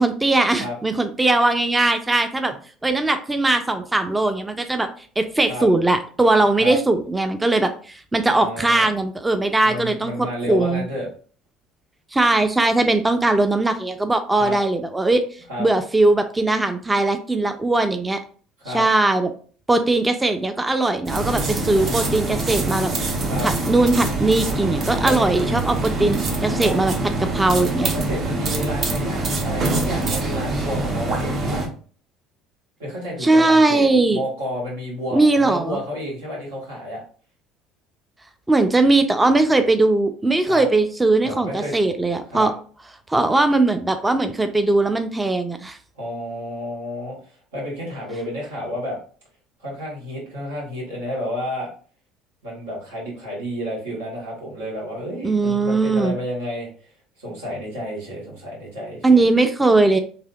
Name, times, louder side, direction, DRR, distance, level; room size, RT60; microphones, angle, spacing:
voice 1, 0.0-2.5 2.8-4.9 5.2-10.9 12.1-15.2 15.6-18.2 18.7-19.3 19.7-22.9 23.4-26.9 27.2-27.9 33.2-34.2 35.1-35.8 38.5-42.5 43.1-45.8 55.2-56.2 59.0-60.0, right 2 dB, 15° right, 8 dB, 0.4 m, -19 dB
voice 2, 8.3-8.9 9.6-11.1 14.3-14.6 15.5-15.7 18.6-18.8 23.2-23.5 24.9-25.3 26.6-26.8 27.8-31.7 32.8-37.0 40.5-40.7 41.2-41.8 42.3-42.5 45.9-49.0 49.6-51.7 52.4-56.9 57.2-59.3, equal, 90° right, -3 dB, 1.3 m, -31 dB
sound 1, 21.0-31.7, right 2 dB, 45° right, 0.8 m, -24 dB
3.3 x 2.6 x 2.3 m, 0.43 s
hypercardioid pair, 70°, 0 cm